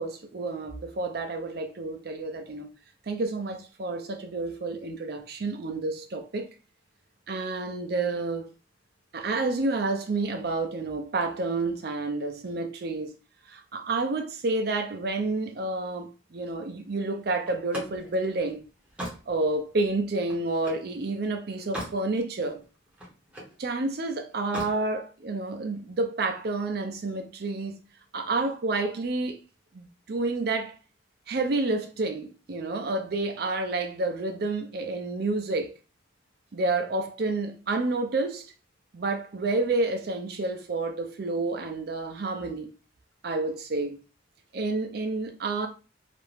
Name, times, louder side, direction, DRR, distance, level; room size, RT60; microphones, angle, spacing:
voice 1, 0.0-2.7 3.1-6.5 7.3-8.5 9.1-13.1 13.5-18.6 19.3-22.6 23.6-27.8 28.1-29.4 29.7-30.8 31.3-35.7 36.5-38.5 38.9-42.7 43.2-44.0 44.5-45.7, right 3 dB, 55° right, 0.4 m, -29 dB
Slam, 17.5-20.9 21.4-22.0 22.4-23.6 24.4-24.8, equal, 5° right, 0.6 m, -39 dB
2.5 x 2.1 x 3.1 m
head